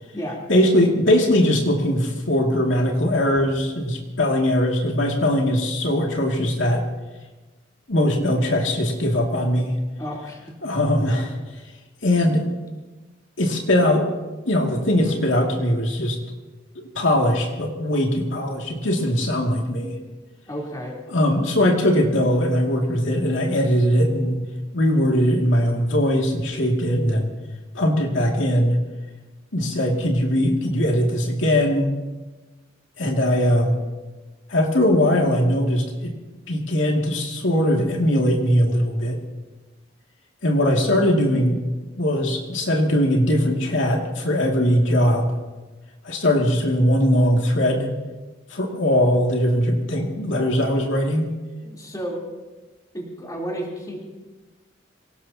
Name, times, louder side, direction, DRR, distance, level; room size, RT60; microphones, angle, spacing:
voice 1, 0.5-6.8 7.9-9.7 10.6-11.4 12.0-12.4 13.4-14.1 14.5-16.2 16.8-19.9 21.1-24.5 24.7-27.3 27.7-28.8 29.5-31.9 33.0-33.8 34.5-36.1 36.5-39.2 40.4-41.6 42.0-45.3 46.0-47.9 48.5-51.3, equal, 80° left, 0 dB, 2.4 m, -20 dB
voice 2, 10.0-10.6 20.5-21.0 51.6-52.2 52.9-54.0, equal, 20° left, -2 dB, 3.5 m, -32 dB
26.0 x 18.0 x 2.9 m, 1.2 s
head